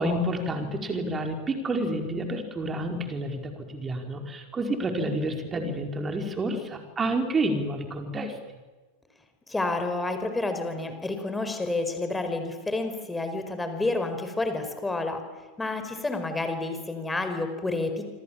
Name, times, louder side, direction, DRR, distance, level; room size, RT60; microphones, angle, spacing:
voice 1, 0.0-8.4, right 1 dB, 20° right, 4 dB, 4.9 m, -29 dB
voice 2, 9.5-15.3 15.6-18.1, left 2 dB, 10° left, 7 dB, 4.8 m, -29 dB
27.0 x 26.5 x 7.5 m, 1.3 s
figure-of-eight pair, 90°, 0 cm